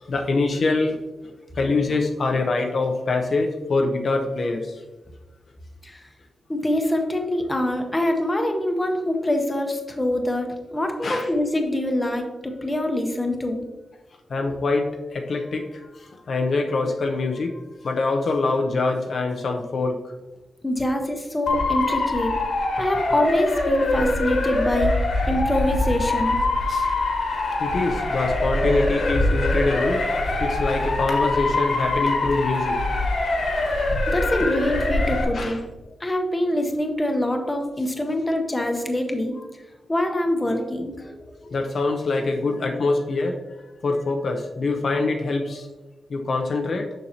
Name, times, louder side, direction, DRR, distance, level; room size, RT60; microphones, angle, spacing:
voice 1, 0.0-1.0 1.6-4.8 11.0-11.3 14.3-20.1 26.7-26.9 27.6-30.0 30.4-32.8 33.6-33.7 35.3-35.6 40.5-40.6 41.0-43.4 43.8-45.7 46.1-46.9, left 3 dB, 50° left, 3 dB, 0.5 m, -24 dB
voice 2, 6.5-13.6 20.6-22.3 22.8-26.4 34.1-35.6 36.0-39.3 39.9-41.0, left 1 dB, 15° left, 4 dB, 0.8 m, -25 dB
Motor vehicle (road) / Siren, 21.5-35.2, left 2 dB, 65° left, 1.4 m, -23 dB
6.9 x 6.3 x 2.7 m, 1.1 s
wide cardioid pair, 155°, 0 cm